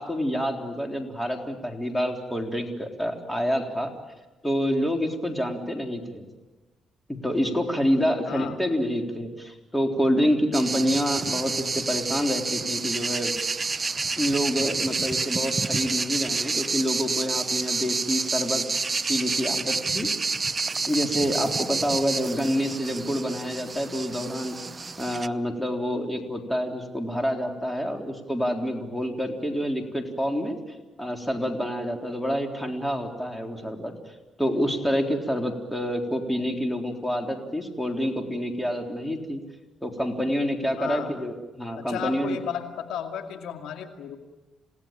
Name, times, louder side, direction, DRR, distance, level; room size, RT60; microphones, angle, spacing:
voice 1, 0.0-3.9 4.4-6.2 7.1-13.3 14.2-18.6 19.1-20.1 20.9-24.6 25.0-30.6 31.0-33.9 34.4-39.4 39.8-42.4, equal, 5° left, 3 dB, 3.7 m, -27 dB
voice 2, 8.3-8.6 40.8-41.1 41.8-44.2, left 8 dB, 85° left, 5 dB, 2.2 m, -33 dB
sound 1, 10.5-25.3, right 4 dB, 30° right, 0.7 m, -29 dB
28.5 x 17.5 x 9.0 m, 1.2 s
cardioid pair, 90°, 0 cm